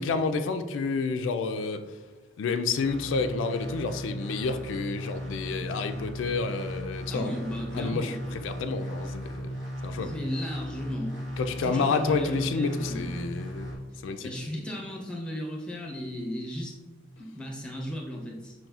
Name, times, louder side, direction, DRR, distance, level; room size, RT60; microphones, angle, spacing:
voice 1, 0.0-1.8 2.4-7.3 7.7-9.5 9.8-10.1 11.4-14.3, left 4 dB, 90° left, 7 dB, 0.3 m, -29 dB
sound 1, 2.8-13.8, equal, 75° right, 1.0 m, -37 dB
voice 2, 7.1-8.3 9.9-11.1 11.6-13.2 14.2-16.7 17.2-18.5, equal, 5° left, -1 dB, 0.6 m, -36 dB
5.4 x 2.8 x 2.3 m, 1.2 s
head